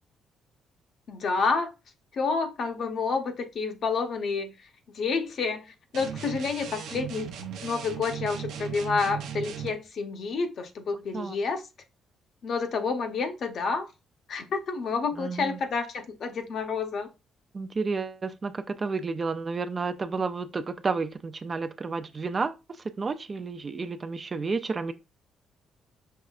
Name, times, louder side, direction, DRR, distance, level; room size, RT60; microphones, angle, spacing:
voice 1, 1.1-1.7 2.1-4.5 4.9-7.3 7.6-11.6 12.4-13.9 14.3-17.1, left 4 dB, 50° left, 0.8 m, -29 dB
sound 1, 5.9-9.8, right 8 dB, 90° right, 0.7 m, -37 dB
voice 2, 15.2-15.6 17.5-22.5 23.0-24.9, right 4 dB, 30° right, 0.3 m, -31 dB
5.5 x 3.1 x 2.4 m
cardioid pair, 140°, 0 cm